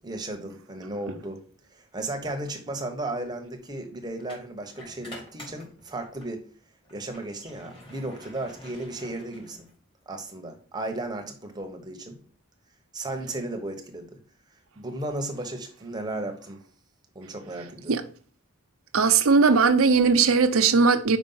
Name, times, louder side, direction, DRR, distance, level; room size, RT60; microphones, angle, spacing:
voice 1, 0.0-1.4 1.7-6.4 6.9-9.7 10.1-12.2 12.9-14.1 14.8-16.6 17.1-18.0, right 2 dB, 20° right, 1.0 m, -35 dB
sound 1, 4.2-6.4 6.8-10.0, left 1 dB, 25° left, 3.1 m, -48 dB
voice 2, 18.9-21.2, right 5 dB, 75° right, 0.7 m, -19 dB
5.2 x 4.9 x 5.5 m
head